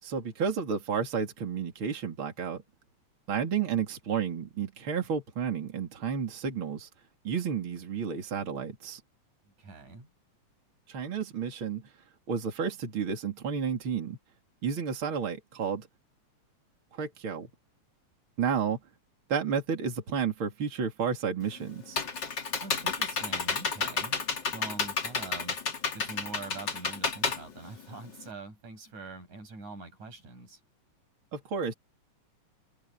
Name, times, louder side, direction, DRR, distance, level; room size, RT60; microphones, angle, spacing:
voice 1, 0.0-2.6 3.3-6.9 7.2-9.0 10.9-11.9 12.3-14.2 14.6-15.9 16.9-17.5 18.4-18.8 19.3-22.0 31.3-31.7, right 6 dB, 45° right, 3.8 m, -31 dB
voice 2, 9.4-10.1 22.6-24.2 24.5-25.6 25.9-30.6, right 3 dB, 90° right, 8.5 m, -44 dB
Computer keyboard, 21.4-28.3, left 5 dB, 40° left, 2.9 m, -31 dB
omnidirectional pair, 3.3 m